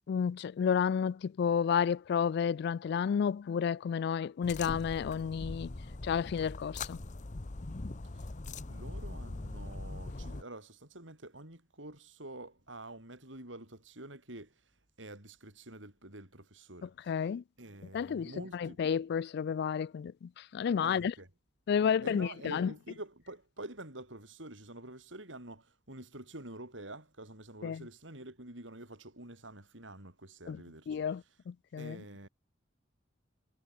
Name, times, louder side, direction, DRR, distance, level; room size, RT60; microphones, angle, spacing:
voice 1, 0.1-5.7 6.0-7.0 17.1-17.4 17.9-21.1 21.7-22.7 27.6-27.8 30.5-30.6 30.9-32.0, left 7 dB, 60° left, 0.3 m, -31 dB
sound 1, 4.4-10.4, left 2 dB, 40° left, 0.9 m, -42 dB
voice 2, 8.6-14.7 15.0-17.3 17.6-18.9 20.8-21.3 21.8-31.4 31.8-32.3, right 2 dB, 85° right, 7.6 m, -48 dB
head